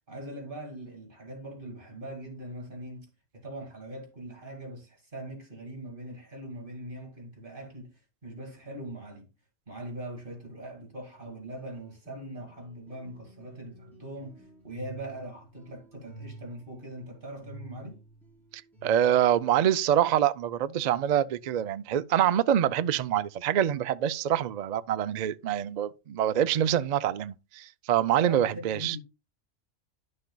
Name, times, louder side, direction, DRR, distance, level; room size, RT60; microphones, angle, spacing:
voice 1, 0.1-3.1 3.3-9.3 9.7-18.0 28.2-29.0, right 1 dB, 45° right, 2.2 m, -41 dB
sound 1, 11.1-19.4, right 2 dB, ahead, 4.6 m, -51 dB
voice 2, 18.8-29.0, right 10 dB, 65° right, 0.4 m, -25 dB
11.5 x 6.5 x 2.2 m
omnidirectional pair, 1.2 m